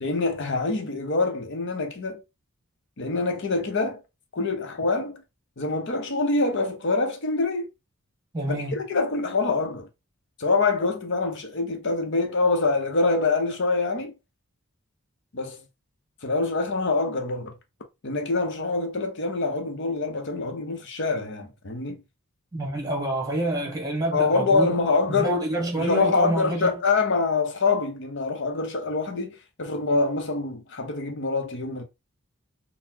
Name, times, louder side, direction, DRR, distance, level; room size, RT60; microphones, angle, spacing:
voice 1, 0.0-2.2 3.0-4.0 4.3-5.2 5.6-7.7 8.5-9.9 10.4-14.1 15.3-15.6 16.2-17.5 18.0-22.0 24.1-25.3 25.8-31.8, left 3 dB, 55° left, 0.7 m, -25 dB
voice 2, 8.3-8.8 22.5-24.8 25.1-26.7, right 1 dB, 15° right, 1.0 m, -27 dB
3.9 x 2.0 x 2.7 m
head